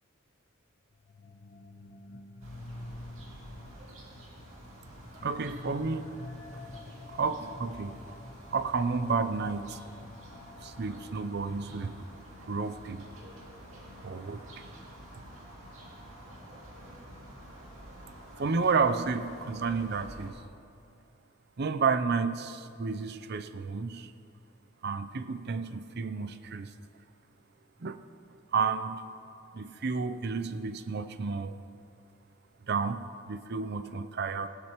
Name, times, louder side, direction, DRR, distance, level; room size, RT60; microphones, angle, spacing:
sound 1, 0.9-12.8, left 2 dB, 45° left, 0.6 m, -48 dB
sound 2, 2.4-20.3, right 1 dB, 70° right, 2.4 m, -49 dB
voice 1, 5.2-6.1 7.1-8.2 8.5-9.8 10.6-12.0 12.5-13.0 14.0-14.4 18.4-20.4 21.6-24.1 24.8-26.7 27.8-28.0 28.5-29.0 29.5-31.5 32.6-34.5, right 5 dB, 50° right, 12 dB, 0.5 m, -31 dB
19.0 x 12.0 x 3.0 m, 2.6 s
head